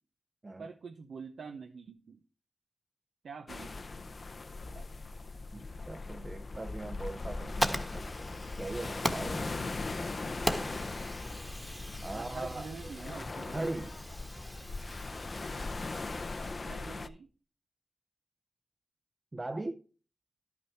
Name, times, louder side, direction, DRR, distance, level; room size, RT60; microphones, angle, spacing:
voice 1, 0.6-2.2 3.2-3.7 4.7-4.8 12.1-13.7 16.6-17.3, right 5 dB, 90° right, 0.7 m, -45 dB
sound 1, 3.5-17.1, left 3 dB, 55° left, 0.6 m, -40 dB
voice 2, 5.5-8.1 8.6-9.5 12.0-12.7 13.5-14.0 19.3-19.8, right 2 dB, 40° right, 0.7 m, -39 dB
Fire, 7.2-16.6, equal, 5° right, 1.2 m, -39 dB
11.5 x 5.9 x 4.4 m
cardioid pair, 45°, 0 cm